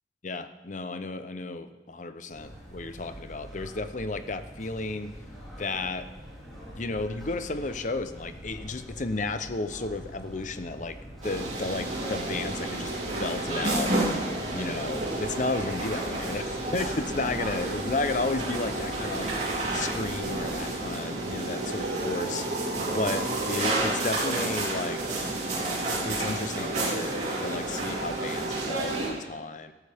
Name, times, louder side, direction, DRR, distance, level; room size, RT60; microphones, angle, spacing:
voice 1, 0.2-5.1 5.6-6.1 6.8-11.0 11.2-13.9 14.5-16.4 16.7-19.3 19.7-22.4 22.9-25.0 26.0-29.7, left 3 dB, 45° left, 10 dB, 0.8 m, -33 dB
sound 1, 2.3-20.7, equal, ahead, 4.0 m, -44 dB
sound 2, 11.2-29.1, right 2 dB, 40° right, 3.8 m, -30 dB
sound 3, 21.2-23.8, right 2 dB, 70° right, 2.0 m, -35 dB
18.0 x 13.0 x 3.6 m, 1.2 s
head